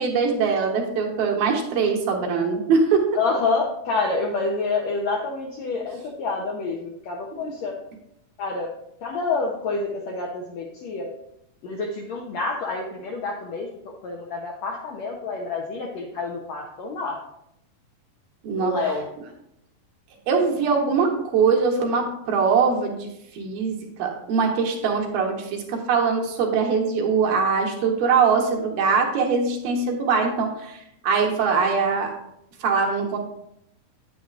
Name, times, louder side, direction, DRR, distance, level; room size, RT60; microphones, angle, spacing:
voice 1, 0.0-3.0 18.4-18.7 20.3-32.1 32.6-33.2, right 5 dB, 80° right, 1 dB, 2.9 m, -22 dB
voice 2, 3.1-7.7 8.4-8.7 9.0-11.1 11.6-13.7 14.0-17.2 18.6-19.1, left 3 dB, 75° left, 0 dB, 1.6 m, -28 dB
9.3 x 9.0 x 2.4 m, 0.79 s
omnidirectional pair, 4.1 m